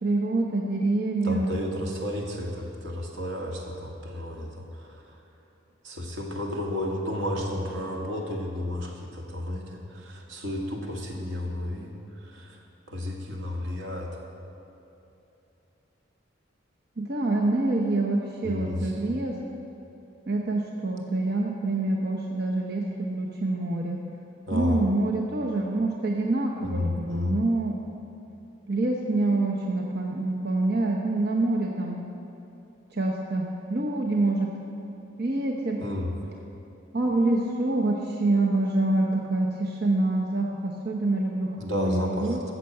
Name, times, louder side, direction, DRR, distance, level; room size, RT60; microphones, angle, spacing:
voice 1, 0.0-1.5 17.0-19.4 20.3-24.0 24.5-27.7 28.7-32.0 32.9-34.5 35.2-35.8 36.9-42.4, right 2 dB, 55° right, -1 dB, 0.9 m, -26 dB
voice 2, 1.2-5.0 5.8-11.9 12.2-12.6 12.9-14.1 18.4-18.9 24.5-24.8 26.6-27.4 35.8-36.1 41.6-42.4, left 1 dB, 85° right, 0 dB, 2.0 m, -32 dB
14.0 x 6.8 x 7.8 m, 2.9 s
head